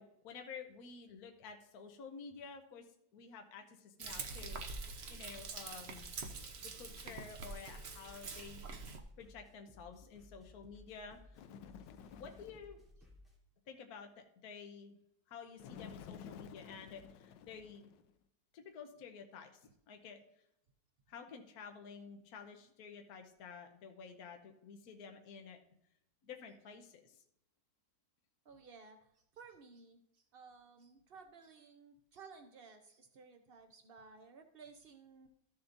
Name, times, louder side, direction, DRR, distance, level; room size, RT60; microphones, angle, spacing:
voice 1, 0.0-2.9 3.1-4.6 5.1-6.1 6.6-8.7 9.2-11.4 12.1-12.8 13.7-15.0 15.3-17.9 18.5-20.2 21.1-25.6 26.3-27.2, left 6 dB, 60° left, 4 dB, 1.3 m, -51 dB
Frying (food), 4.0-9.0, right 4 dB, 50° right, 0.9 m, -45 dB
sound 1, 5.9-13.4, left 2 dB, ahead, 2.9 m, -60 dB
Bird, 11.3-12.7 15.6-18.1, left 8 dB, 85° left, 1.3 m, -52 dB
voice 2, 28.4-35.3, right 5 dB, 75° right, 6 dB, 0.5 m, -57 dB
14.0 x 6.9 x 2.6 m, 0.75 s
omnidirectional pair, 1.9 m